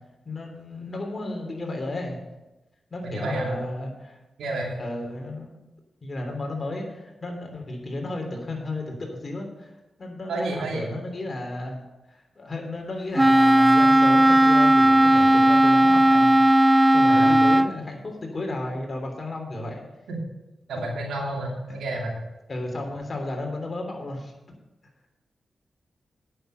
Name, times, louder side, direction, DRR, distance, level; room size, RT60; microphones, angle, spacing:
voice 1, 0.3-2.2 2.9-4.2 4.8-5.6 6.0-9.7 10.0-11.8 12.1-19.8 22.5-24.3, left 2 dB, 45° left, 1 dB, 3.4 m, -33 dB
voice 2, 3.0-3.7 4.4-4.7 10.3-10.9 17.1-17.4 20.1-20.2 20.7-22.2, right 2 dB, 85° right, -1 dB, 2.6 m, -30 dB
Wind instrument woodwind instrument, 13.2-17.7, right 1 dB, 15° right, 0.4 m, -16 dB
9.1 x 7.2 x 6.8 m, 1.0 s
supercardioid pair, 45°, 0 cm